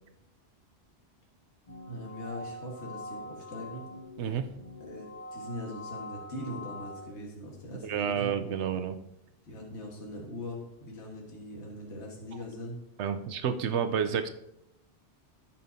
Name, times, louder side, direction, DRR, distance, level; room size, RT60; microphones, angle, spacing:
sound 1, 1.7-7.1, left 1 dB, 35° left, 1.1 m, -44 dB
voice 1, 1.9-3.9 4.8-8.3 9.5-12.8, left 1 dB, 80° left, -1 dB, 1.9 m, -41 dB
voice 2, 7.8-9.0 13.0-14.3, right 8 dB, 85° right, 9 dB, 1.0 m, -30 dB
15.5 x 5.6 x 2.7 m, 0.87 s
omnidirectional pair, 1.1 m